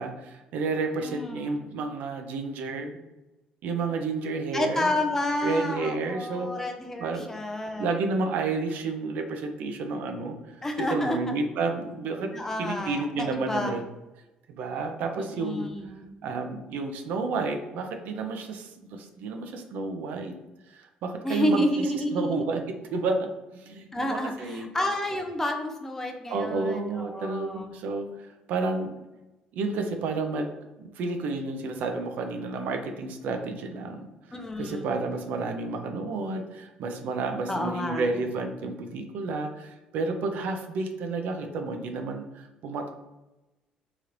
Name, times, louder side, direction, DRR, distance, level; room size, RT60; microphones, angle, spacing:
voice 1, 0.0-3.0 3.6-4.9 5.4-6.5 7.0-7.3 7.8-12.3 12.6-13.8 14.5-15.7 16.2-20.3 20.7-21.8 22.1-22.6 22.9-24.7 26.3-28.9 29.5-30.5 30.8-34.1 34.6-42.9, right 3 dB, 75° right, 5 dB, 0.5 m, -31 dB
voice 2, 1.0-1.8 4.5-7.9 10.6-11.4 12.3-13.8 15.2-16.1 21.2-22.4 23.9-27.7 34.3-34.9 37.5-38.1, left 1 dB, 15° left, 3 dB, 0.4 m, -30 dB
3.1 x 2.9 x 2.5 m, 1.0 s
cardioid pair, 110°, 3 cm